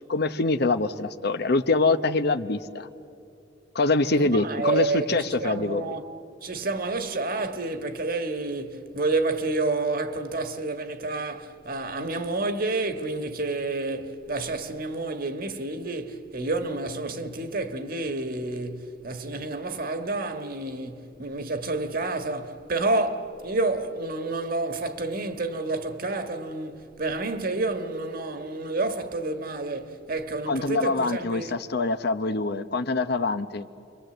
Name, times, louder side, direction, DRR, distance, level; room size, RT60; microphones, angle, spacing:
voice 1, 0.1-2.9 3.7-6.0 30.5-33.7, left 3 dB, 60° left, 0.9 m, -25 dB
voice 2, 4.2-6.1 6.4-31.6, right 2 dB, 50° right, 1.6 m, -29 dB
30.0 x 24.0 x 7.9 m
head